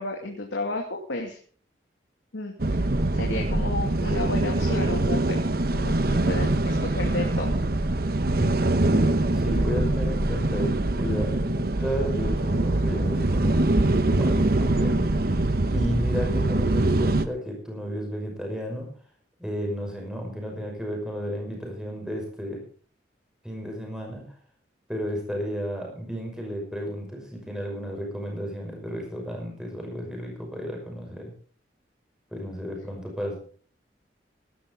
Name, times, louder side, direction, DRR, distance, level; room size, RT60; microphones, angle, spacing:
voice 1, 0.0-1.4 2.3-2.9 3.1-5.4 5.7-7.7, left 2 dB, 90° left, 1 dB, 2.5 m, -32 dB
sound 1, 2.6-17.3, right 2 dB, 55° right, 1.0 m, -23 dB
voice 2, 8.3-15.4 15.7-18.9 19.4-22.6 23.4-24.3 24.9-31.3 32.3-33.4, equal, 5° right, 1 dB, 5.8 m, -33 dB
17.5 x 12.5 x 3.8 m, 0.44 s
head